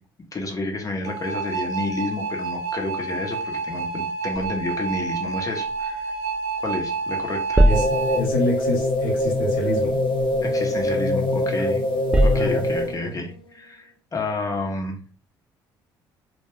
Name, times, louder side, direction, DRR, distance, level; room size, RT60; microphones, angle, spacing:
voice 1, 0.3-6.1 6.6-7.6 10.4-11.8 12.2-15.0, left 2 dB, 30° left, 2 dB, 0.9 m, -30 dB
sound 1, 1.0-8.2, right 4 dB, 70° right, 0.4 m, -29 dB
sound 2, 4.3-6.9 7.2-11.4 11.8-13.1, right 1 dB, 10° right, 0.3 m, -26 dB
voice 2, 7.6-10.0 12.3-12.8 13.0-13.2, equal, 85° left, -1 dB, 0.9 m, -28 dB
sound 3, 7.7-13.1, left 1 dB, 50° left, 0.5 m, -23 dB
2.2 x 2.1 x 3.4 m, 0.38 s
hypercardioid pair, 55°, 11 cm